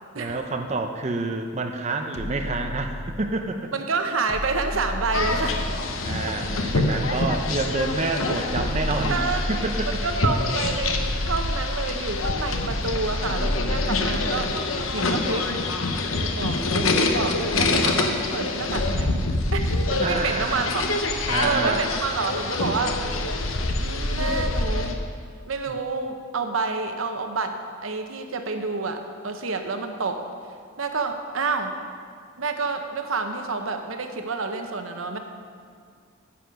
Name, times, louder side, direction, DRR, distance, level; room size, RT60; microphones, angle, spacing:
voice 1, 0.1-3.7 6.0-9.2 9.5-9.9 20.0-20.8 21.3-21.8 25.7-25.8, right 3 dB, 35° right, 4 dB, 0.6 m, -28 dB
sound 1, 2.1-3.5 4.3-5.9 6.4-7.8 8.6-10.2 10.7-12.1 12.8-14.5, left 1 dB, 30° left, 0.5 m, -32 dB
voice 2, 3.7-5.7 9.1-14.5 14.9-15.5 16.2-19.2 19.5-20.9 21.4-23.0 23.8-25.0 25.5-27.5 27.8-30.2 30.8-31.7 32.4-35.2, right 4 dB, 90° right, 6 dB, 0.8 m, -29 dB
sound 2, 5.1-25.0, left 2 dB, 85° left, 0.9 m, -26 dB
10.0 x 8.0 x 5.2 m, 2.1 s
head